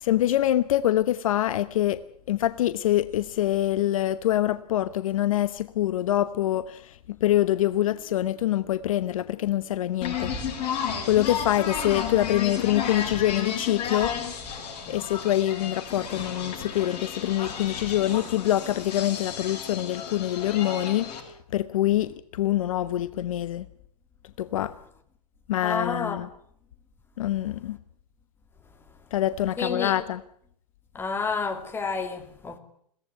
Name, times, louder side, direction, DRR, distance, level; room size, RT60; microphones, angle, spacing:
voice 1, 0.0-2.0 2.3-10.3 11.1-14.2 14.9-23.7 24.4-24.7 25.5-26.3 27.2-27.8 29.1-30.2, left 13 dB, 55° left, 1.0 m, -25 dB
sound 1, 10.0-21.2, left 7 dB, 30° left, 7.8 m, -33 dB
voice 2, 25.6-26.2 29.6-30.0 30.9-32.6, left 4 dB, 10° left, 2.4 m, -30 dB
22.0 x 17.0 x 9.3 m
hypercardioid pair, 140°, 21 cm